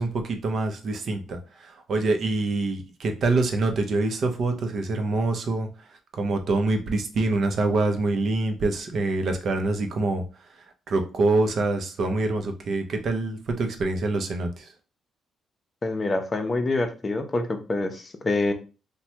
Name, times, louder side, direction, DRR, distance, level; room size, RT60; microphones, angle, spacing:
voice 1, 0.0-1.4 1.9-5.7 6.1-10.2 10.9-14.7, right 2 dB, 60° right, 5 dB, 0.6 m, -25 dB
voice 2, 15.8-18.5, left 2 dB, 30° left, 7 dB, 0.5 m, -26 dB
3.1 x 2.2 x 2.8 m, 0.33 s
cardioid pair, 90°, 0 cm